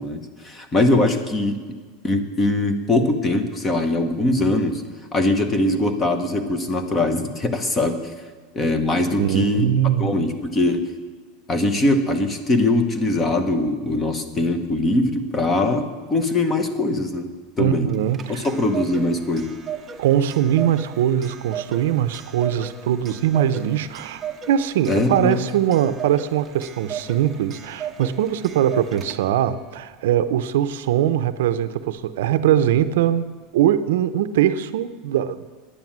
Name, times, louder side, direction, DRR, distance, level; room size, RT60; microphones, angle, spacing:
voice 1, 0.0-1.6 2.0-4.8 5.1-8.1 8.5-9.7 10.0-10.9 11.5-17.3 17.6-17.9 18.3-19.5 24.9-25.4, left 2 dB, 20° left, 1.0 m, -21 dB
voice 2, 9.2-10.3 17.6-18.5 20.0-35.4, right 10 dB, 85° right, 0.6 m, -21 dB
Clock, 17.9-29.5, right 8 dB, 20° right, 0.7 m, -36 dB
10.0 x 9.2 x 7.4 m
supercardioid pair, 155°, 0 cm